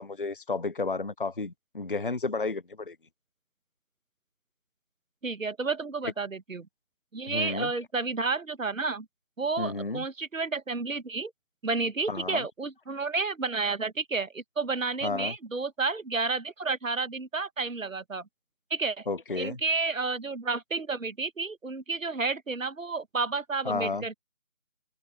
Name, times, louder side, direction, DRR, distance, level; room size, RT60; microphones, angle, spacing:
voice 1, 0.0-3.0 7.3-7.7 9.6-10.1 12.1-12.5 15.0-15.3 19.1-19.6 23.6-24.0, left 3 dB, 45° left, 0.5 m, -32 dB
voice 2, 5.2-6.7 7.1-9.1 9.4-11.3 11.6-18.3 18.7-19.1 19.4-24.1, right 4 dB, 85° right, 1.2 m, -31 dB
open air
figure-of-eight pair, 165°, 39 cm